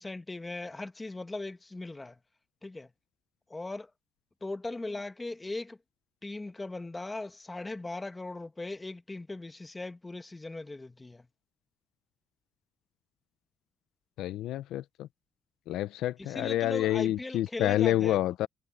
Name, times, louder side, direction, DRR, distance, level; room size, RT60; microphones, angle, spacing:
voice 1, 0.0-2.1 2.6-2.9 3.5-3.9 4.4-5.8 6.2-11.2 16.2-18.2, left 2 dB, 20° left, 1.6 m, -38 dB
voice 2, 14.2-15.1 15.7-18.5, left 13 dB, 85° left, 0.6 m, -28 dB
cardioid pair, 90°, 0 cm